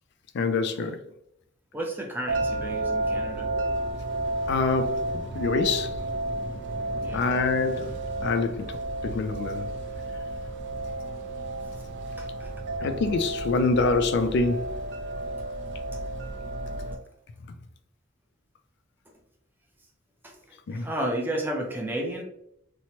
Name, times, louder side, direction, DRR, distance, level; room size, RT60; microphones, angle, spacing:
voice 1, 0.3-0.9 4.5-5.0 5.3-5.9 7.1-7.9 8.2-8.6 9.0-9.7 12.8-14.6 20.7-20.9, left 4 dB, 60° left, 0.3 m, -25 dB
voice 2, 1.7-3.5 7.0-7.3 12.2-12.5 20.2-20.3 20.7-22.2, right 1 dB, 10° right, 0.5 m, -32 dB
sound 1, 2.3-17.0, right 2 dB, 60° right, 0.4 m, -32 dB
2.9 x 2.1 x 2.8 m
head